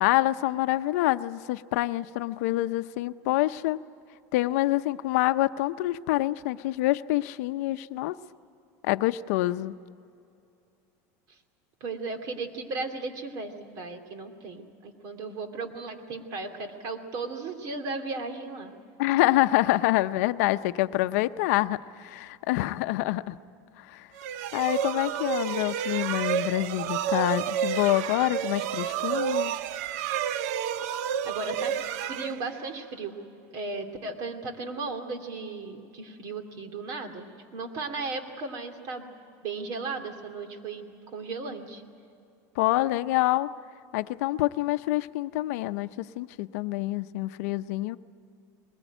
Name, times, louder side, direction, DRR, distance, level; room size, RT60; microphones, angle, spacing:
voice 1, 0.0-3.8 4.3-8.2 8.8-9.7 19.0-23.4 23.8-24.1 24.5-29.6 42.6-43.5 43.9-48.0, left 17 dB, 70° left, 12 dB, 0.7 m, -26 dB
voice 2, 11.8-18.7 31.2-33.2 33.5-39.1 39.4-40.9 41.1-41.8, right 3 dB, 45° right, 7 dB, 2.6 m, -36 dB
sound 1, 24.2-32.9, right 9 dB, 70° right, 0.6 m, -30 dB
21.5 x 20.5 x 9.1 m, 2.5 s
supercardioid pair, 150°, 9 cm